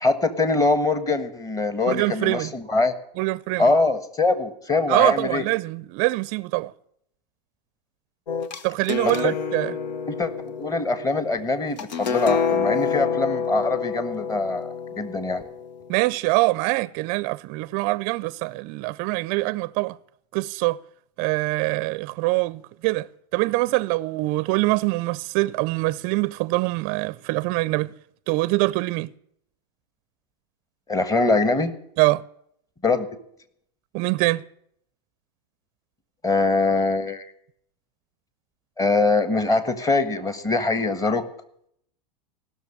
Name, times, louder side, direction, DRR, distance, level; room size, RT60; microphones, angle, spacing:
voice 1, 0.0-2.9 3.6-5.4 9.0-9.3 10.1-10.3 10.6-15.4 30.9-31.7 32.8-33.1 36.2-37.3 38.8-41.2, left 3 dB, 15° left, 1.5 m, -23 dB
voice 2, 1.9-2.5 3.2-3.7 4.9-6.7 8.6-9.7 15.9-20.0 20.3-20.8 21.2-27.9 28.3-29.1 32.0-32.2 33.9-34.4, right 22 dB, 45° right, 0.5 m, -24 dB
sound 1, 8.3-16.0, left 6 dB, 90° left, 1.1 m, -28 dB
16.5 x 6.6 x 9.8 m
hypercardioid pair, 120°, 21 cm